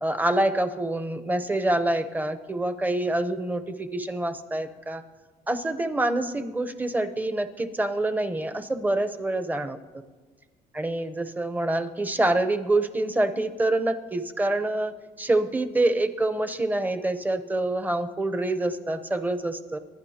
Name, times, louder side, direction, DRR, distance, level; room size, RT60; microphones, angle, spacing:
voice 1, 0.0-5.0 5.5-9.8 10.7-19.8, right 2 dB, 10° right, 9 dB, 0.9 m, -26 dB
26.0 x 10.5 x 2.9 m, 1.3 s
cardioid pair, 110°, 17 cm